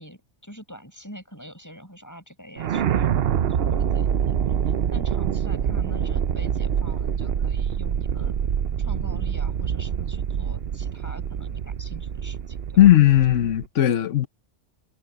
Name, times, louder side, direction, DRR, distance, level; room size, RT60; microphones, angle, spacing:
voice 1, 0.0-4.3 4.6-8.3 8.8-12.8, equal, 15° left, 7.6 m, -44 dB
sound 1, 2.6-13.7, right 8 dB, 60° right, 0.9 m, -25 dB
voice 2, 12.8-14.3, left 13 dB, 80° left, 1.2 m, -16 dB
omnidirectional pair, 1.2 m